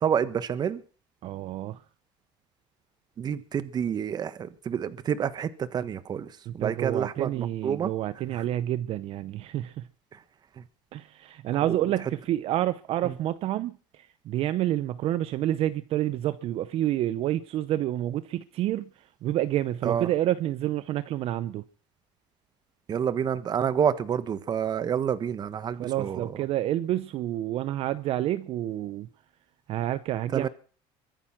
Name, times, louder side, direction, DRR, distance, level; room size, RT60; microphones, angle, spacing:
voice 1, 0.0-0.8 3.2-7.9 8.3-8.4 10.6-10.7 11.6-11.8 13.0-13.1 19.8-20.1 22.9-26.3 30.3-30.5, right 8 dB, 35° right, 1.3 m, -28 dB
voice 2, 1.2-1.8 6.5-9.9 10.9-21.6 25.7-29.1 29.7-30.5, right 13 dB, 55° right, 0.8 m, -29 dB
23.0 x 9.2 x 6.0 m
cardioid pair, 135°, 12 cm